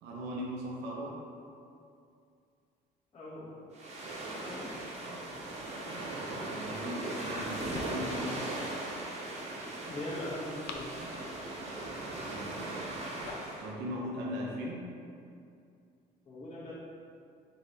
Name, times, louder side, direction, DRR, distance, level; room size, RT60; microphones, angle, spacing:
voice 1, 0.0-1.2 6.4-8.5 12.2-12.7 13.6-14.9, equal, 80° right, -3 dB, 0.7 m, -39 dB
voice 2, 3.1-3.6 4.0-4.9 9.9-10.9 16.3-16.7, left 1 dB, 35° left, -8 dB, 0.8 m, -41 dB
sound 1, 3.7-13.7, right 2 dB, 40° right, 0.8 m, -38 dB
sound 2, 7.3-8.3 10.3-11.4 12.7-13.6, left 4 dB, 70° left, 0.4 m, -46 dB
3.8 x 3.1 x 3.9 m, 2.5 s
cardioid pair, 110°, 17 cm